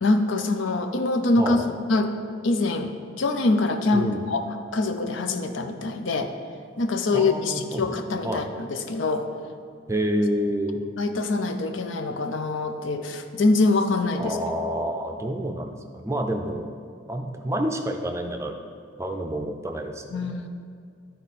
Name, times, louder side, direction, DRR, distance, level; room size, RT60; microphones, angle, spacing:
voice 1, 0.0-1.6 1.9-2.1 2.4-4.4 4.7-6.3 6.8-8.4 8.7-9.3 11.0-14.4 20.1-20.5, left 2 dB, 75° left, 7 dB, 0.6 m, -24 dB
voice 2, 1.4-1.7 3.9-4.3 7.1-7.8 8.2-8.4 9.9-10.8 14.2-16.7 17.1-18.6 19.0-20.4, right 1 dB, 15° right, 4 dB, 0.5 m, -28 dB
12.0 x 4.4 x 4.2 m, 2.2 s
head